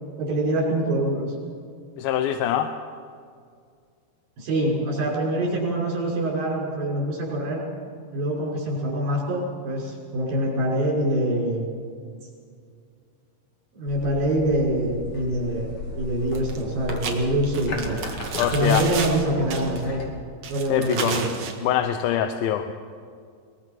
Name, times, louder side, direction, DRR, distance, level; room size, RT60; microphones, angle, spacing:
voice 1, 0.2-1.2 4.4-7.6 8.1-11.7 13.7-15.7 16.0-18.0 18.5-20.2 20.5-21.3, right 1 dB, 80° right, -3 dB, 7.6 m, -25 dB
voice 2, 2.0-2.7 18.4-18.8 20.7-21.2 21.6-22.7, left 10 dB, 90° left, 7 dB, 2.6 m, -23 dB
sound 1, 13.9-20.1, left 3 dB, 60° left, 3.9 m, -35 dB
sound 2, 16.4-16.6 16.9-19.2 19.5-19.8 20.4-21.6, right 5 dB, 55° right, 2.9 m, -32 dB
23.0 x 21.0 x 6.0 m, 2.2 s
omnidirectional pair, 4.1 m